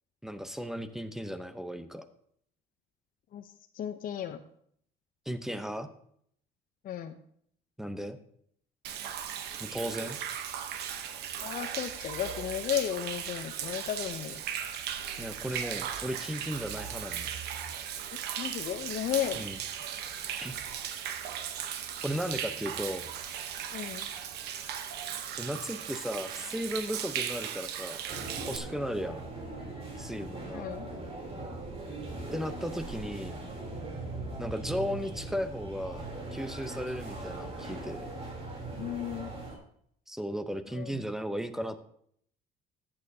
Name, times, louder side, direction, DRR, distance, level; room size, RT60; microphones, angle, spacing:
voice 1, 0.2-2.1 5.3-5.9 7.8-8.2 9.6-10.2 15.2-17.3 19.3-19.6 20.4-20.6 22.0-23.1 25.3-28.0 28.5-29.2 30.0-30.6 32.3-33.4 34.4-36.1 36.3-38.1 40.1-41.8, equal, ahead, 10 dB, 0.8 m, -35 dB
voice 2, 3.3-4.4 6.8-7.2 11.4-14.4 18.4-19.4 23.7-24.1 29.0-29.1 30.5-30.9 38.8-39.3 40.7-41.0, left 10 dB, 55° left, 6 dB, 0.7 m, -34 dB
Human voice / Rain / Stream, 8.8-28.6, right 9 dB, 75° right, 1.0 m, -37 dB
sound 1, 28.1-39.6, right 2 dB, 35° right, 3.4 m, -40 dB
14.0 x 8.8 x 2.8 m, 0.66 s
cardioid pair, 110°, 17 cm